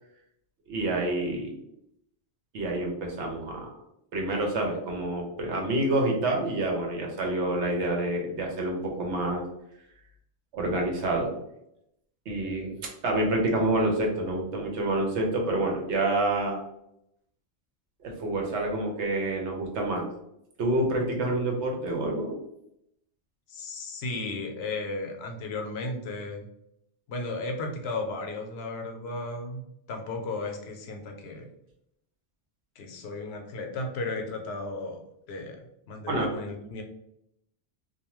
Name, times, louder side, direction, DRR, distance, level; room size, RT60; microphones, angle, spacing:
voice 1, 0.7-1.6 2.5-3.7 4.1-9.4 10.5-11.3 12.3-12.8 13.0-16.6 18.0-20.1 20.6-22.4 36.1-36.3, right 2 dB, 85° right, 1 dB, 1.0 m, -27 dB
voice 2, 23.5-26.5 27.1-29.6 29.9-31.5 32.8-35.0 35.3-35.6 35.9-36.8, left 2 dB, 70° left, 3 dB, 0.8 m, -34 dB
2.5 x 2.2 x 2.9 m, 0.79 s
omnidirectional pair, 1.1 m